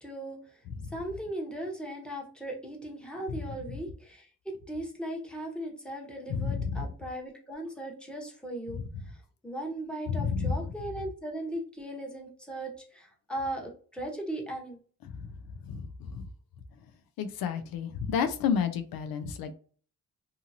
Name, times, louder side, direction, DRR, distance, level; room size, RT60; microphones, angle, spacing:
voice 1, 0.0-0.4 0.9-8.8 9.1-9.2 9.4-14.8, right 1 dB, 5° left, 0 dB, 1.0 m, -38 dB
voice 2, 6.3-6.9 10.1-10.6 15.6-16.2 17.2-19.5, left 6 dB, 85° left, 9 dB, 0.5 m, -30 dB
2.7 x 2.5 x 2.7 m, 0.41 s
cardioid pair, 75°, 35 cm